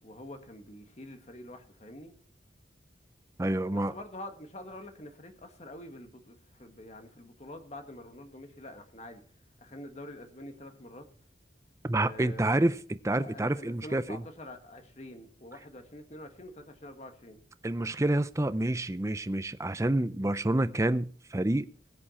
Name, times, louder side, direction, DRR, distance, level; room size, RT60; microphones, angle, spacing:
voice 1, 0.0-2.1 3.7-9.2 9.6-11.0 12.0-12.7 13.2-17.4, left 1 dB, 35° left, 1.8 m, -46 dB
voice 2, 3.4-3.9 11.8-14.2 17.6-21.7, right 1 dB, 15° right, 0.5 m, -28 dB
20.5 x 7.3 x 4.3 m
head